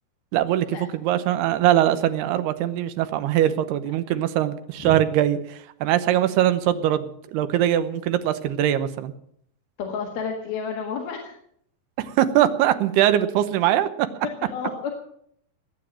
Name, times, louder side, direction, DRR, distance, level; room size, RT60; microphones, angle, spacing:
voice 1, 0.3-9.1 12.0-13.9, right 12 dB, 80° right, 11 dB, 2.9 m, -22 dB
voice 2, 9.8-11.4 14.4-14.9, left 6 dB, 70° left, 0 dB, 3.6 m, -31 dB
19.5 x 8.4 x 7.4 m, 0.68 s
omnidirectional pair, 4.7 m